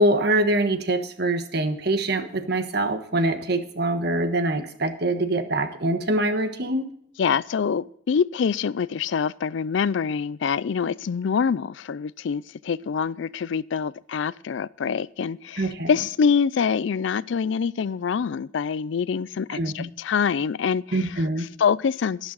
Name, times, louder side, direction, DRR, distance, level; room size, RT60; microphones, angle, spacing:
voice 1, 0.0-6.9 15.6-15.9 19.5-19.9 20.9-21.5, right 1 dB, 55° right, 8 dB, 1.3 m, -24 dB
voice 2, 7.2-21.1 21.6-22.3, left 6 dB, 70° left, 20 dB, 0.4 m, -25 dB
12.0 x 11.5 x 4.0 m, 0.67 s
head